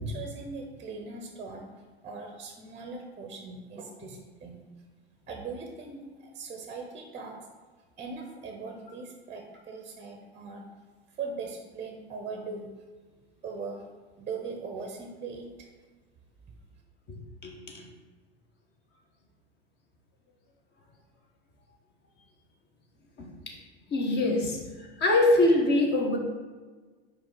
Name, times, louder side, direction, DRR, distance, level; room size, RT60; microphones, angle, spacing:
voice 1, 0.0-1.7 2.0-4.6 5.3-7.5 8.0-10.6 11.1-12.7 13.4-13.8 14.2-15.7, right 4 dB, 20° right, 3 dB, 0.8 m, -40 dB
voice 2, 17.4-17.8 23.2-23.6 23.9-26.2, left 2 dB, 35° left, 0 dB, 1.4 m, -24 dB
5.2 x 4.7 x 4.1 m, 1.4 s
hypercardioid pair, 95°, 31 cm